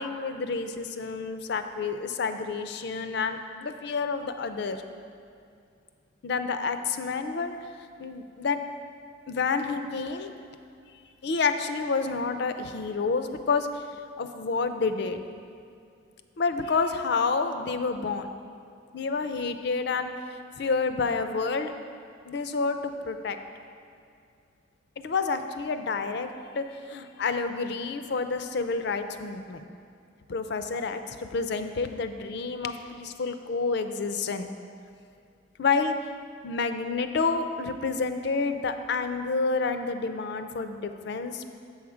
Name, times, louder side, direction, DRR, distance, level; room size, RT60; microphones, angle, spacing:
voice 1, 0.0-4.8 6.2-7.6 8.0-8.6 9.3-10.3 11.2-13.8 14.2-15.2 16.4-18.3 18.9-20.1 20.6-21.7 22.3-23.4 25.0-29.7 30.3-34.5 35.6-36.0 36.4-41.5, left 4 dB, 60° left, 9 dB, 0.4 m, -29 dB
7.1 x 6.7 x 4.9 m, 2.4 s
head